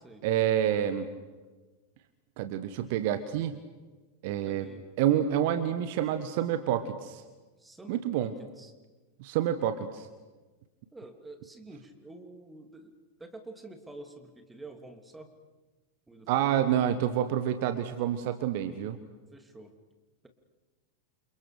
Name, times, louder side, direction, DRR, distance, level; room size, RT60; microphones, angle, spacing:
voice 1, 0.2-1.1 2.4-3.6 4.2-4.7 5.0-7.2 7.9-8.3 9.2-10.1 16.3-19.0, right 10 dB, 50° right, 10 dB, 1.4 m, -28 dB
voice 2, 4.4-4.8 7.6-8.7 10.9-12.9 13.2-15.3 16.1-16.3 19.3-19.7, right 2 dB, 10° right, 5 dB, 2.9 m, -48 dB
29.0 x 28.5 x 5.1 m, 1.2 s
figure-of-eight pair, 90°, 0 cm